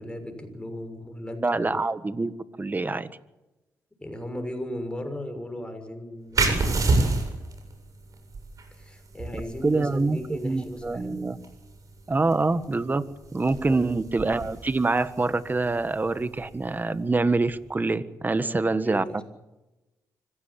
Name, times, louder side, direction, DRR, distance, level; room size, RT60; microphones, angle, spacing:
voice 1, 0.0-1.7 4.0-6.9 8.7-11.2 13.7-13.9 18.4-19.2, left 1 dB, 15° left, 6 dB, 6.5 m, -37 dB
voice 2, 1.4-3.1 9.6-11.4 12.1-13.0 13.3-19.2, right 3 dB, 25° right, 13 dB, 1.5 m, -25 dB
sound 1, 6.3-17.6, right 3 dB, 50° right, 7.5 m, -31 dB
25.0 x 16.0 x 8.6 m, 1.0 s
cardioid pair, 70°, 7 cm